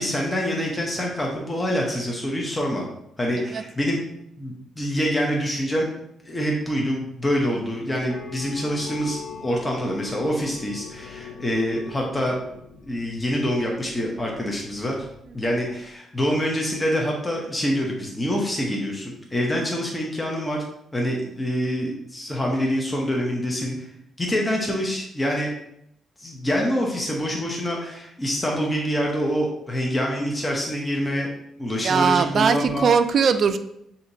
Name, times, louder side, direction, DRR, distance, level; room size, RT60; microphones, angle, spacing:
voice 1, 0.0-2.8 3.2-4.0 4.4-5.9 6.2-12.3 12.8-14.9 15.3-20.6 20.9-23.9 24.2-25.5 26.2-31.3 31.6-32.9, equal, 15° left, -1 dB, 0.9 m, -26 dB
sound 1, 8.1-15.6, left 5 dB, 55° left, 0.7 m, -41 dB
voice 2, 31.8-33.6, right 6 dB, 55° right, 10 dB, 0.4 m, -20 dB
6.5 x 2.8 x 2.7 m, 0.77 s
cardioid pair, 90°, 0 cm